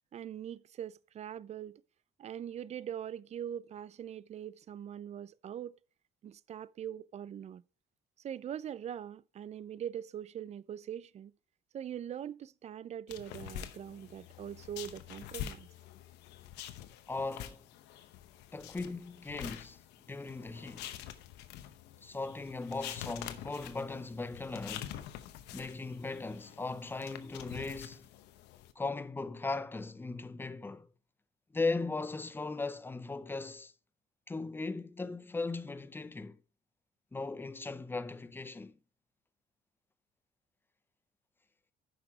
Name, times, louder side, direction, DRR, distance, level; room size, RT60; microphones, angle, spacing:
voice 1, 0.1-1.8 2.2-5.8 6.2-7.6 8.2-11.3 11.7-15.7, right 9 dB, 40° right, 0.5 m, -42 dB
sound 1, 13.1-28.7, left 11 dB, 90° left, 0.9 m, -47 dB
voice 2, 17.1-17.6 18.5-19.8 20.1-20.9 22.0-24.9 25.5-28.1 28.8-30.9 31.5-33.7 34.3-36.4 37.1-38.8, left 3 dB, 10° left, 0.6 m, -38 dB
9.2 x 5.7 x 4.7 m
cardioid pair, 110°, 17 cm